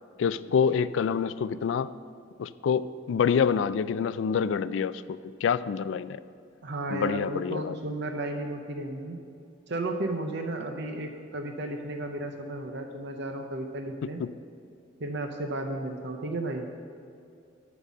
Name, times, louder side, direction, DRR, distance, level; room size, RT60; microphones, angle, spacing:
voice 1, 0.2-1.9 2.4-6.2 6.9-7.8 14.0-14.3, left 6 dB, 70° left, 16 dB, 0.3 m, -27 dB
voice 2, 6.6-9.2 9.7-14.2 15.0-16.7, right 2 dB, 65° right, 5 dB, 0.7 m, -33 dB
12.0 x 4.1 x 7.3 m, 2.5 s
head